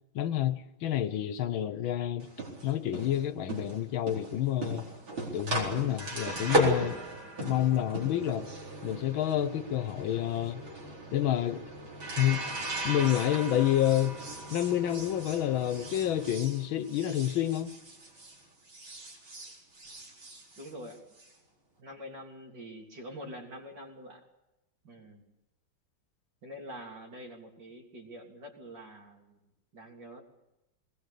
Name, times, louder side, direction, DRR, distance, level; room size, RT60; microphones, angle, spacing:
voice 1, 0.2-2.3 2.6-4.8 5.3-7.0 7.4-8.5 8.8-10.6 11.1-11.7 12.2-12.4 12.8-14.2 14.5-17.7, left 12 dB, 85° left, 1.7 m, -29 dB
sound 1, 2.2-18.4 18.7-21.3, right 1 dB, 85° right, 5.2 m, -36 dB
voice 2, 20.6-21.0 21.8-24.3 24.8-25.3 26.4-30.2, equal, 60° right, 3.9 m, -46 dB
20.5 x 20.0 x 8.3 m
omnidirectional pair, 2.1 m